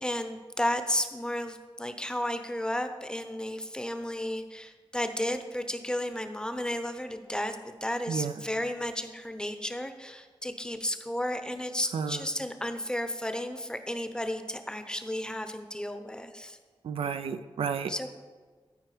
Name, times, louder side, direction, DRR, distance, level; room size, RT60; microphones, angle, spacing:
voice 1, 0.0-16.6 17.9-18.1, left 1 dB, 10° left, 8 dB, 0.7 m, -33 dB
voice 2, 11.9-12.2 16.8-17.9, right 6 dB, 90° right, 10 dB, 0.4 m, -31 dB
13.5 x 4.6 x 4.9 m, 1.5 s
wide cardioid pair, 70°, 9 cm